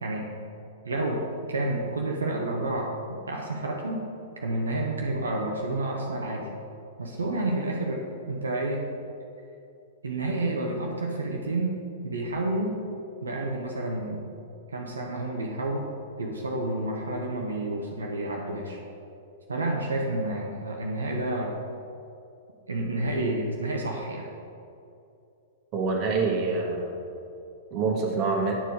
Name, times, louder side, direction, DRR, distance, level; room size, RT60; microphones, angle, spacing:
voice 1, 0.8-1.2 1.5-4.0 4.4-6.5 7.0-8.8 10.0-11.8 12.0-12.8 13.2-14.3 14.7-15.9 16.2-18.8 19.5-21.5 22.7-24.3, right 2 dB, 75° right, 0 dB, 0.9 m, -29 dB
voice 2, 25.7-27.0 27.7-28.5, right 4 dB, 35° right, 0 dB, 1.6 m, -26 dB
10.0 x 4.5 x 4.8 m, 2.6 s
figure-of-eight pair, 105°, 0 cm